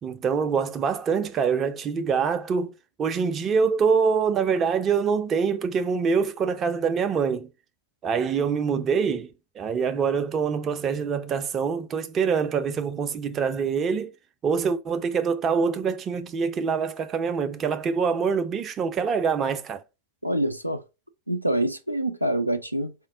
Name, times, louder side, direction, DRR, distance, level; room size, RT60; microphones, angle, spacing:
voice 1, 0.0-2.7 3.0-7.5 8.0-14.1 14.4-19.8, right 6 dB, 25° right, 0.4 m, -25 dB
voice 2, 20.2-20.8 21.3-22.9, right 1 dB, 90° right, 0.3 m, -26 dB
4.3 x 2.0 x 3.5 m
figure-of-eight pair, 90°, 0 cm